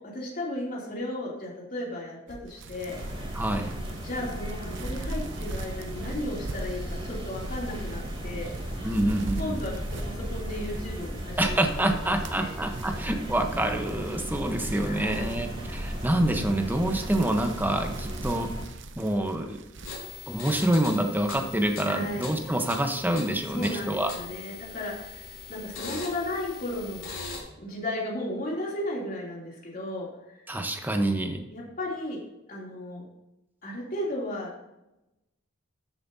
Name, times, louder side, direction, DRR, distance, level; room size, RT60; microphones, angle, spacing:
voice 1, 0.1-3.2 4.0-8.5 9.4-9.7 10.0-12.0 12.3-12.5 14.8-15.4 21.8-22.3 23.5-27.1 27.6-30.1 30.3-30.5 31.5-32.2 32.5-33.1 33.6-34.6, left 1 dB, 45° left, -3 dB, 2.9 m, -35 dB
sound 1, 2.3-11.6 12.0-19.9, right 2 dB, 60° right, 0.7 m, -42 dB
sound 2, 2.8-18.7, equal, 30° right, 3.0 m, -36 dB
voice 2, 3.3-3.7 8.8-9.6 11.4-18.5 19.0-19.6 20.3-24.1 30.5-31.4, right 1 dB, 10° right, 5 dB, 1.0 m, -27 dB
sound 3, 19.8-27.4, left 4 dB, 75° left, 3.5 m, -40 dB
13.5 x 7.4 x 2.8 m, 0.92 s
head